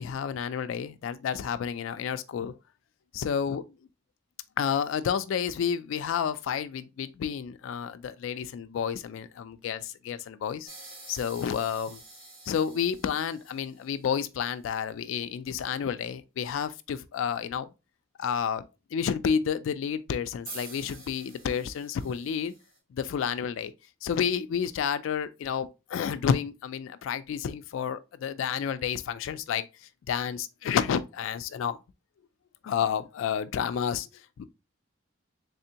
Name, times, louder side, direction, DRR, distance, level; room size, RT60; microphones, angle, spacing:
voice 1, 0.0-2.5 3.1-3.6 4.6-10.7 11.1-12.0 12.5-17.7 18.2-22.5 22.9-23.7 24.0-29.7 30.1-31.8 32.6-34.1 34.4-34.5, left 7 dB, 80° left, 0.3 m, -30 dB
sound 1, 10.6-14.1 20.5-22.8, right 3 dB, 90° right, 1.7 m, -47 dB
3.6 x 3.4 x 2.8 m
head